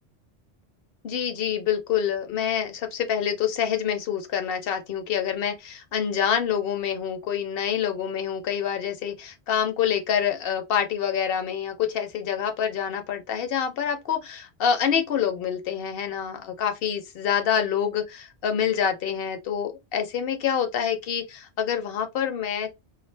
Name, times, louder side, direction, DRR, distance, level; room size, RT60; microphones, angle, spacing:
voice 1, 1.0-22.7, left 8 dB, 60° left, 0.8 m, -26 dB
2.5 x 2.3 x 3.2 m
omnidirectional pair, 1.2 m